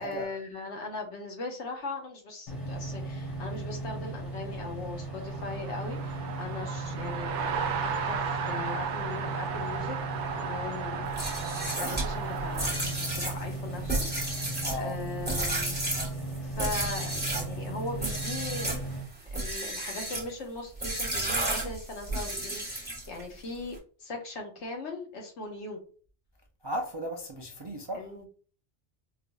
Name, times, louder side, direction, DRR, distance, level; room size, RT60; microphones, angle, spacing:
voice 1, 0.0-11.1 11.4-14.1 14.4-15.8 16.4-18.8 19.3-25.8 27.9-28.3, left 3 dB, 75° left, 1.2 m, -39 dB
sound 1, 2.5-19.0, right 2 dB, 30° left, 1.1 m, -37 dB
sound 2, 5.1-12.7, right 6 dB, 80° right, 0.9 m, -35 dB
sound 3, 11.1-17.5 18.0-18.8 19.3-20.3 20.8-23.2, right 2 dB, 10° right, 1.0 m, -32 dB
voice 2, 14.6-15.0 26.6-28.1, equal, 45° right, 0.3 m, -35 dB
4.5 x 2.5 x 2.2 m
omnidirectional pair, 1.2 m